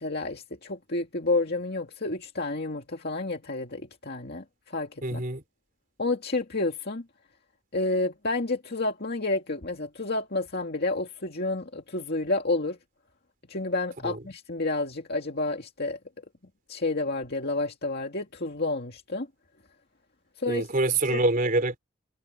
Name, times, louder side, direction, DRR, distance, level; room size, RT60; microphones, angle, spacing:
voice 1, 0.0-5.2 6.0-7.0 7.7-12.8 13.5-16.0 16.7-19.3 20.4-20.7 21.1-21.2, left 2 dB, 50° left, 2.2 m, -30 dB
voice 2, 5.0-5.4 14.0-14.2 20.5-21.8, right 2 dB, 45° right, 3.4 m, -25 dB
head